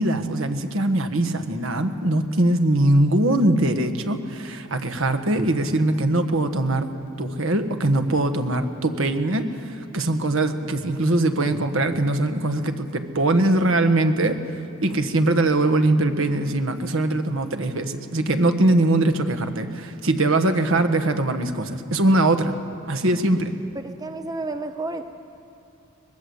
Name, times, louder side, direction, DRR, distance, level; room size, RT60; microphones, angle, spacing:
voice 1, 0.0-14.4 14.8-22.6 22.9-23.5, right 2 dB, 65° right, 8 dB, 1.4 m, -22 dB
voice 2, 23.7-25.0, right 2 dB, 15° right, 7 dB, 0.6 m, -31 dB
22.5 x 21.0 x 8.1 m, 2.6 s
head